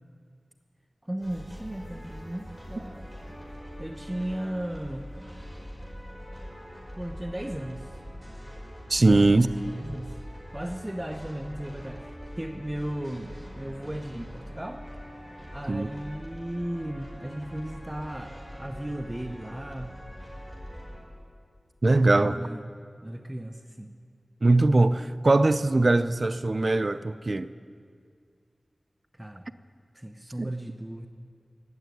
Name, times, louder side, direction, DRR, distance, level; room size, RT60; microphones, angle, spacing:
voice 1, 1.0-3.1 3.5-5.1 6.9-7.9 9.0-10.1 10.5-14.8 15.5-20.0 22.1-22.7 23.0-23.9 29.1-29.5 29.9-31.1, right 1 dB, 20° right, 6 dB, 0.8 m, -36 dB
sound 1, 1.2-21.0, equal, 5° left, 5.7 m, -43 dB
voice 2, 8.9-9.5 15.7-15.9 21.8-22.4 24.4-27.5 30.4-30.5, right 2 dB, 50° right, 13 dB, 0.5 m, -21 dB
17.5 x 8.1 x 9.5 m, 2.1 s
cardioid pair, 45°, 0 cm